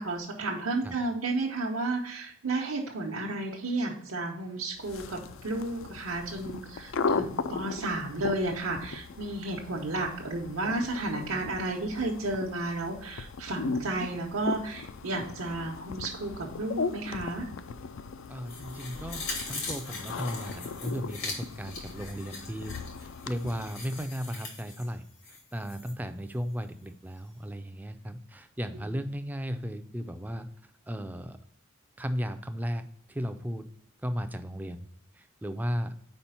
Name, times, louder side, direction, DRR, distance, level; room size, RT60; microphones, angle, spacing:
voice 1, 0.0-17.5 28.7-28.8, right 2 dB, 85° right, -2 dB, 0.9 m, -32 dB
sound 1, 4.8-24.1, left 4 dB, 70° left, 0.4 m, -38 dB
voice 2, 18.3-30.5 30.9-31.4 32.0-33.7 34.0-34.9 35.1-35.9, equal, 10° right, 8 dB, 0.4 m, -35 dB
sound 2, 18.5-25.9 26.3-26.4, left 3 dB, 85° left, 2.4 m, -41 dB
4.9 x 4.4 x 5.4 m, 0.71 s
head